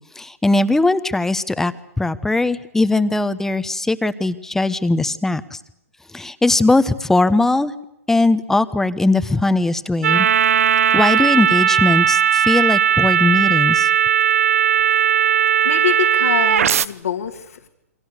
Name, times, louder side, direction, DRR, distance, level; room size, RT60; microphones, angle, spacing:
voice 1, 0.2-1.7 2.0-5.4 6.1-7.7 8.1-10.3 10.9-13.9, left 2 dB, 5° left, 13 dB, 1.1 m, -19 dB
sound 1, 10.0-16.9, right 9 dB, 65° right, 0.9 m, -17 dB
voice 2, 15.6-17.7, left 8 dB, 70° left, 5 dB, 2.4 m, -25 dB
29.0 x 24.0 x 6.7 m, 0.80 s
hypercardioid pair, 125°, 8 cm